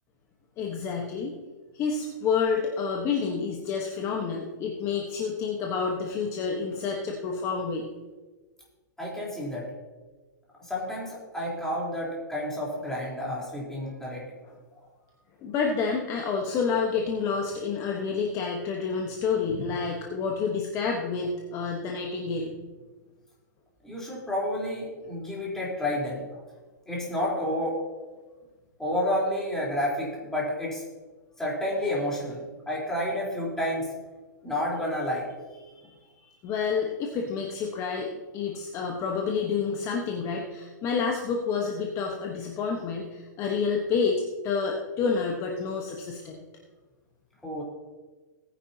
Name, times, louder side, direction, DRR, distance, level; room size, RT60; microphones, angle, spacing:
voice 1, 0.6-1.3 1.7-7.9 15.4-22.5 35.6-46.4, left 5 dB, 30° left, 1 dB, 1.2 m, -29 dB
voice 2, 9.0-9.7 10.6-14.4 23.8-26.2 26.9-27.8 28.8-30.8 31.4-33.9 34.4-35.3 47.4-47.6, left 1 dB, 5° left, -5 dB, 3.9 m, -30 dB
18.0 x 10.0 x 2.9 m, 1.3 s
hypercardioid pair, 145°, 10 cm